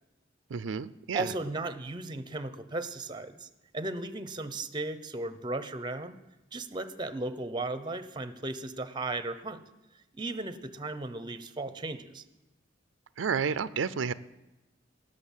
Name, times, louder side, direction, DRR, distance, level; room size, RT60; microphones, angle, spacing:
voice 1, 0.5-1.3 13.2-14.1, right 6 dB, 90° right, 15 dB, 0.5 m, -31 dB
voice 2, 1.1-6.2 6.5-9.6 10.1-12.2, right 2 dB, 25° right, 12 dB, 0.7 m, -36 dB
18.0 x 6.6 x 7.3 m, 1.0 s
head